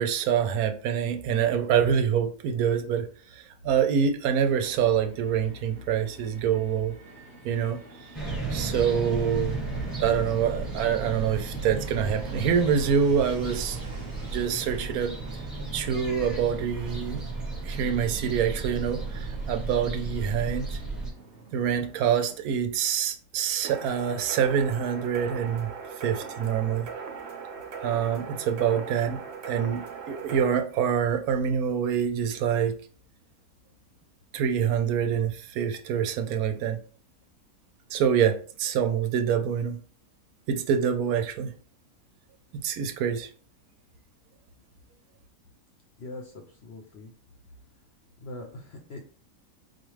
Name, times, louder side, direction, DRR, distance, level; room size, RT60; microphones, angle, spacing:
voice 1, 0.0-6.9 7.4-8.1 8.5-9.6 10.0-13.8 14.3-15.4 15.7-17.2 17.6-20.8 21.5-25.7 26.0-26.9 27.8-29.2 29.5-32.8 34.3-36.8 37.9-39.8 40.5-41.5 42.6-43.3, right 8 dB, 80° right, 1.1 m, -26 dB
Fixed-wing aircraft airplane, 4.4-22.4, right 2 dB, 35° right, 1.0 m, -47 dB
sound 1, 8.1-21.1, right 3 dB, ahead, 1.0 m, -34 dB
sound 2, 23.6-30.5, right 6 dB, 55° right, 0.8 m, -39 dB
voice 2, 46.0-47.1 48.2-49.0, left 2 dB, 60° left, 0.7 m, -42 dB
4.4 x 2.5 x 3.1 m
omnidirectional pair, 1.6 m